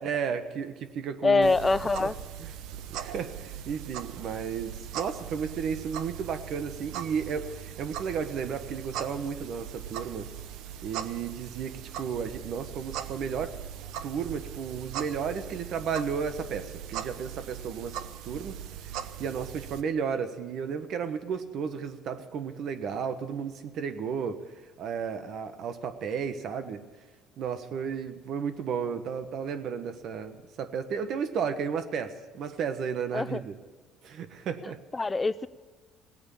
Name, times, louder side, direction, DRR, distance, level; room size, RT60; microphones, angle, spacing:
voice 1, 0.0-1.7 2.0-2.1 2.4-2.5 2.9-10.3 10.8-13.5 14.0-18.0 18.2-18.6 19.2-24.4 24.8-26.8 27.4-33.6 34.0-34.8, right 6 dB, 60° right, 10 dB, 1.3 m, -33 dB
voice 2, 1.2-2.1 33.1-33.4 34.9-35.5, left 3 dB, 20° left, 16 dB, 0.4 m, -24 dB
sound 1, 1.4-19.8, right 9 dB, 80° right, 0.8 m, -40 dB
18.0 x 8.8 x 8.3 m, 1.4 s
cardioid pair, 95°, 0 cm